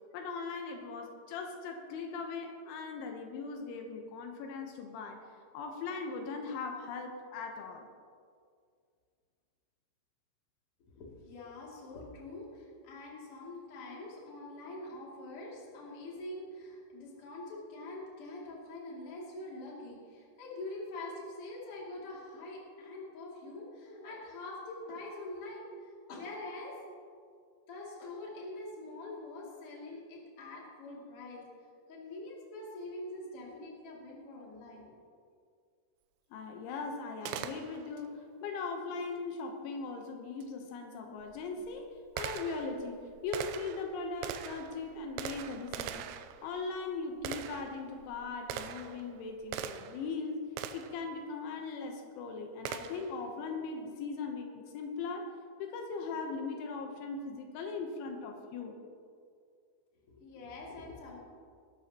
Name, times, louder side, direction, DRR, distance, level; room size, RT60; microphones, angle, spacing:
voice 1, 0.1-5.2 5.5-7.9 36.3-41.9 42.2-46.1 46.4-50.4 50.7-55.3 55.6-58.8, left 4 dB, 80° left, 3 dB, 3.3 m, -39 dB
voice 2, 10.9-26.7 27.7-31.4 31.9-35.0 60.1-61.2, left 2 dB, 35° left, -4 dB, 2.6 m, -44 dB
Gunshot gunfire, 37.3-38.1 40.4-40.5 41.2-50.1 50.6-51.0 52.7-53.2, right 9 dB, 85° right, 2.7 m, -42 dB
20.5 x 12.5 x 2.9 m, 2.2 s
omnidirectional pair, 5.5 m